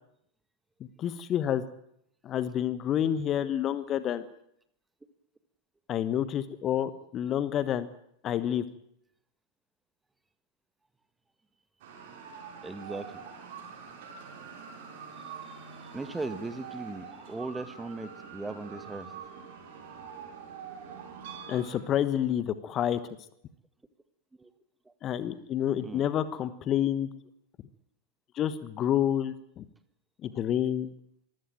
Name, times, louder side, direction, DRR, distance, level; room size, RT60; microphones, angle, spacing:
voice 1, 1.0-1.6 2.2-4.3 5.9-7.9 8.2-8.6 21.5-23.0 25.0-27.1 28.3-29.6 30.2-30.9, left 10 dB, 30° left, 14 dB, 1.2 m, -28 dB
sound 1, 11.8-21.8, right 6 dB, 50° right, 6.3 m, -45 dB
voice 2, 12.6-13.3 15.2-19.1 24.4-24.5 24.9-25.0 25.8-26.1, right 3 dB, 10° right, 12 dB, 1.7 m, -39 dB
24.5 x 15.5 x 9.2 m, 0.72 s
figure-of-eight pair, 90°, 0 cm